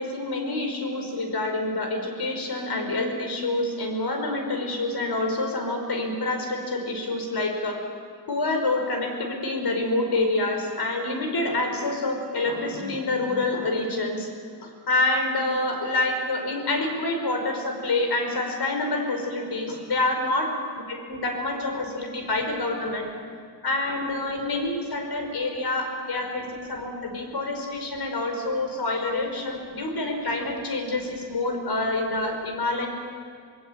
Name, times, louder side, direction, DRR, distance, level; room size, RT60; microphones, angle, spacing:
voice 1, 0.0-7.8 8.3-14.3 14.6-20.6 20.9-23.1 23.6-32.9, left 2 dB, 75° left, 4 dB, 5.3 m, -27 dB
26.5 x 20.0 x 8.9 m, 2.2 s
wide cardioid pair, 110°, 40 cm